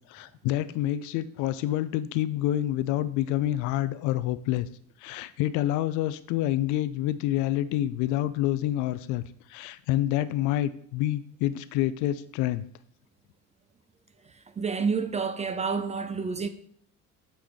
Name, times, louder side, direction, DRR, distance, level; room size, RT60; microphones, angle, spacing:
voice 1, 0.1-4.7 5.0-9.2 9.5-12.6, left 13 dB, 45° left, 0.4 m, -27 dB
voice 2, 14.6-16.5, right 5 dB, 15° right, 0.5 m, -29 dB
8.7 x 4.9 x 3.6 m
figure-of-eight pair, 55°, 43 cm